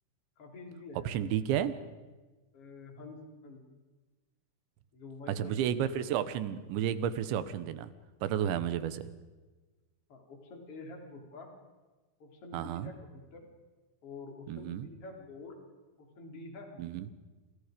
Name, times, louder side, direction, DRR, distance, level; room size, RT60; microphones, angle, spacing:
voice 1, 0.4-1.2 2.5-3.6 4.9-5.6 10.1-11.5 12.2-13.5 14.0-15.6 16.0-16.9, left 3 dB, 35° left, 2 dB, 4.2 m, -47 dB
voice 2, 1.1-1.8 5.3-7.9 8.2-9.1 12.5-12.9 14.5-14.9 16.8-17.1, right 10 dB, 80° right, 13 dB, 3.4 m, -32 dB
28.5 x 28.0 x 5.2 m, 1.2 s
omnidirectional pair, 5.2 m